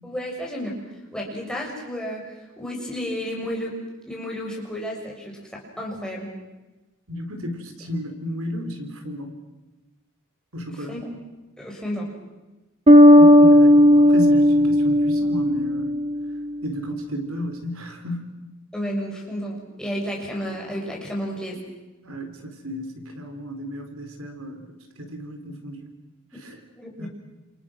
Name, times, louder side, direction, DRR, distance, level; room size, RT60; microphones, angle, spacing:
voice 1, 0.0-0.7 1.1-3.7 4.1-6.3 10.9-11.2 11.6-12.1 18.7-21.6 26.3-26.4 26.8-27.1, equal, 5° left, -2 dB, 6.5 m, -32 dB
voice 2, 7.1-9.3 10.5-10.9 13.2-15.9 16.6-18.3 22.0-25.9 26.3-26.6 27.0-27.1, equal, 75° right, 5 dB, 4.1 m, -33 dB
Bass guitar, 12.9-16.4, left 1 dB, 25° right, 1.0 m, -14 dB
30.0 x 28.0 x 6.3 m, 1.1 s
head